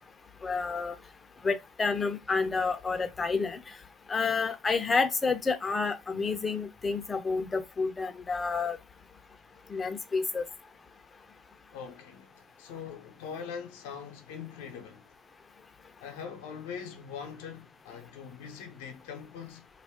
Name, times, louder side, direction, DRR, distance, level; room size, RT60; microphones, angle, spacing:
voice 1, 0.4-1.0 1.4-3.6 4.1-8.8 9.7-10.4, left 4 dB, 25° left, 0.6 m, -29 dB
voice 2, 11.7-15.2 16.0-19.7, left 7 dB, 80° left, 0.7 m, -42 dB
2.5 x 2.2 x 3.5 m
supercardioid pair, 95°, 0 cm